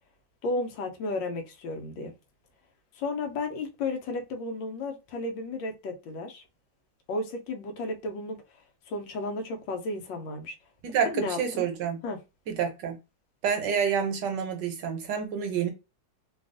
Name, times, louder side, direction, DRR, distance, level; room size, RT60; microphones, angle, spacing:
voice 1, 0.4-2.1 2.9-6.4 7.1-8.4 8.9-10.5 11.0-11.7 12.0-12.2, left 2 dB, 85° left, 1.4 m, -33 dB
voice 2, 10.8-12.0 12.5-13.0 13.4-15.7, right 7 dB, 75° right, 1.3 m, -28 dB
3.3 x 2.3 x 2.5 m
omnidirectional pair, 2.0 m